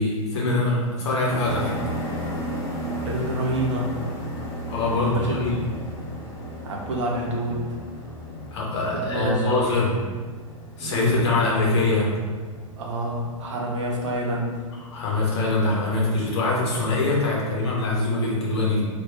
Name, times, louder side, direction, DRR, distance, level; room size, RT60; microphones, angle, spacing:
voice 1, 0.0-1.7 4.7-5.6 8.5-9.9 10.8-12.1 14.9-18.8, left 2 dB, 50° left, -4 dB, 0.8 m, -23 dB
sound 1, 1.3-17.8, equal, 15° left, 0.4 m, -36 dB
voice 2, 3.0-4.0 4.9-5.4 6.6-7.7 8.9-9.6 10.8-11.2 12.8-14.6, right 1 dB, 60° right, -2 dB, 0.6 m, -27 dB
2.4 x 2.1 x 3.4 m, 1.5 s
figure-of-eight pair, 105°, 18 cm